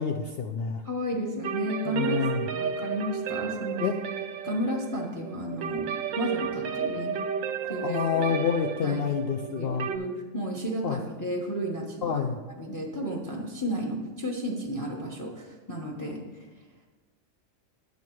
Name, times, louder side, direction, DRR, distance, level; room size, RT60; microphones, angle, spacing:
voice 1, 0.0-0.8 1.8-2.5 3.8-3.9 7.6-9.9 10.8-11.0 12.0-12.4, left 7 dB, 60° left, 4 dB, 0.6 m, -28 dB
voice 2, 0.8-2.2 2.5-3.8 4.4-7.2 7.7-8.2 8.8-9.0 9.6-12.2 12.6-16.5, equal, 15° left, 0 dB, 1.0 m, -33 dB
sound 1, 1.4-10.0, right 8 dB, 80° right, 1.0 m, -33 dB
9.4 x 6.8 x 4.6 m, 1.3 s
omnidirectional pair, 1.4 m